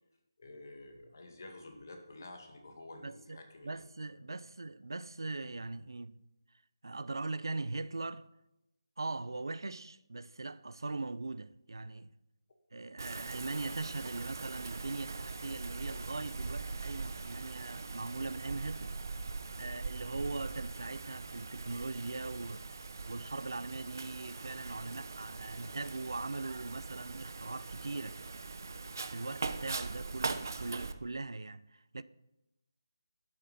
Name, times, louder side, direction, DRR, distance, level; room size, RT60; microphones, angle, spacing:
voice 1, 0.4-3.8, left 2 dB, 45° left, 2.0 m, -50 dB
voice 2, 3.0-6.2 6.8-8.3 9.0-12.1 12.7-19.0 19.6-28.2 29.1-32.0, right 3 dB, 90° right, 0.6 m, -40 dB
Wind, 13.0-30.9, right 3 dB, 50° right, 0.7 m, -41 dB
11.5 x 7.6 x 5.7 m
figure-of-eight pair, 175°, 2 cm